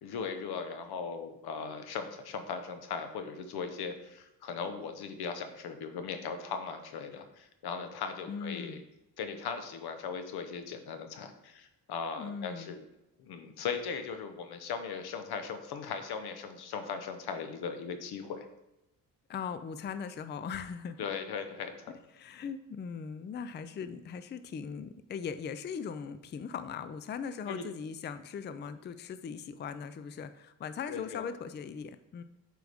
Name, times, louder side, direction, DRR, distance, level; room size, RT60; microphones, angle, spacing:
voice 1, 0.0-8.8 9.2-12.8 13.2-18.5 21.0-21.9 27.5-27.6 30.9-31.2, left 6 dB, 85° left, 8 dB, 0.9 m, -38 dB
voice 2, 8.3-8.8 12.2-12.8 19.3-21.0 22.1-32.2, left 6 dB, 30° left, 11 dB, 0.4 m, -39 dB
7.8 x 4.7 x 3.5 m, 0.93 s
cardioid pair, 110°, 37 cm